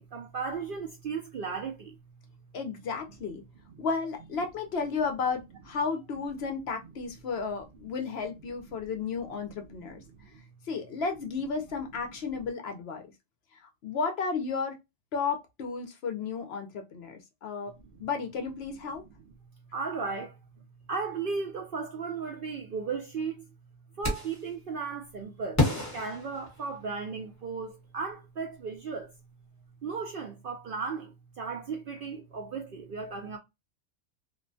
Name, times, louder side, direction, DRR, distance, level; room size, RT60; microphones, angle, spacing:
voice 1, 0.0-2.0 9.5-9.6 10.2-10.4 19.7-20.4 20.9-23.4 24.0-25.7 25.9-29.1 29.8-33.4, right 5 dB, 65° right, 0.6 m, -35 dB
voice 2, 2.5-3.4 3.8-10.0 10.7-13.0 13.8-14.8 15.1-17.7 18.0-19.0, left 5 dB, 60° left, 0.8 m, -33 dB
sound 1, 24.0-24.5 25.6-27.1, left 2 dB, 15° left, 1.0 m, -30 dB
3.0 x 2.1 x 2.5 m
omnidirectional pair, 1.3 m